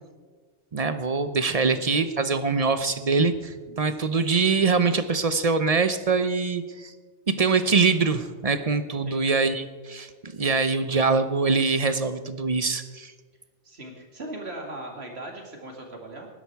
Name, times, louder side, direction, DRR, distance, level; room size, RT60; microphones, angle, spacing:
voice 1, 0.7-6.9 7.3-13.1, right 4 dB, 40° right, 11 dB, 0.7 m, -24 dB
voice 2, 13.6-16.3, right 1 dB, 60° right, 2 dB, 2.6 m, -39 dB
19.5 x 10.5 x 4.7 m, 1.4 s
omnidirectional pair, 1.2 m